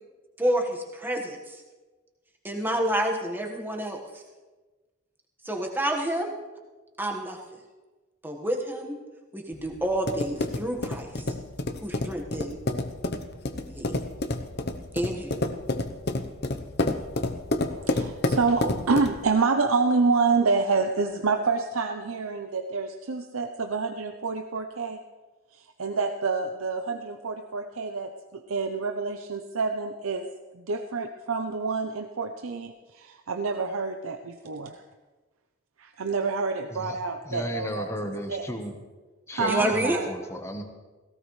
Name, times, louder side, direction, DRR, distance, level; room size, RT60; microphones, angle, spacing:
voice 1, 0.4-1.6 2.4-4.2 5.4-6.3 7.0-7.6 8.2-9.0 9.3-11.3 11.8-12.6 13.6-13.9 14.9-15.4 39.4-40.0, right 1 dB, 10° right, 1 dB, 1.5 m, -29 dB
sound 1, 9.5-19.3, left 2 dB, 50° left, 0.8 m, -30 dB
voice 2, 17.7-25.0 25.8-30.3 30.7-34.8 35.8-37.9 38.3-38.5 39.3-40.1, right 4 dB, 85° right, 6 dB, 0.7 m, -27 dB
voice 3, 37.2-38.7 39.3-40.6, equal, 15° left, 4 dB, 1.2 m, -34 dB
17.0 x 17.0 x 3.2 m, 1.3 s
head